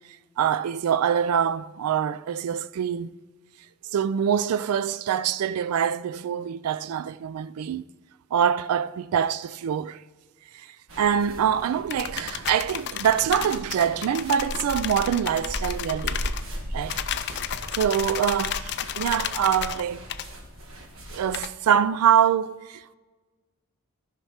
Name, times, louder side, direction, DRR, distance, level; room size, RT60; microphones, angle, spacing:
voice 1, 0.4-3.1 3.9-7.8 8.3-10.0 10.5-10.7 11.0-16.3 16.7-17.0 17.8-20.0 21.1-23.0, right 8 dB, 80° right, 0.3 m, -24 dB
sound 1, 10.9-21.4, equal, 60° right, 1.6 m, -37 dB
sound 2, 11.9-16.4 16.9-19.8 20.1-20.3 21.3-21.5, left 10 dB, 50° left, 0.4 m, -33 dB
13.5 x 6.0 x 4.3 m
head